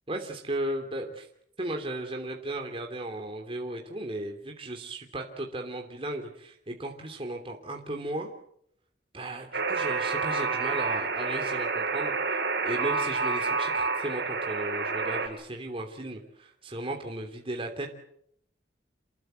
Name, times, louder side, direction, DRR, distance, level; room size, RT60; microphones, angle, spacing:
voice 1, 0.1-1.2 1.6-8.3 9.1-17.9, right 1 dB, 30° right, 3 dB, 3.0 m, -36 dB
Alarm, 9.5-15.3, right 4 dB, 60° right, 7.2 m, -29 dB
28.0 x 21.5 x 8.1 m, 0.71 s
head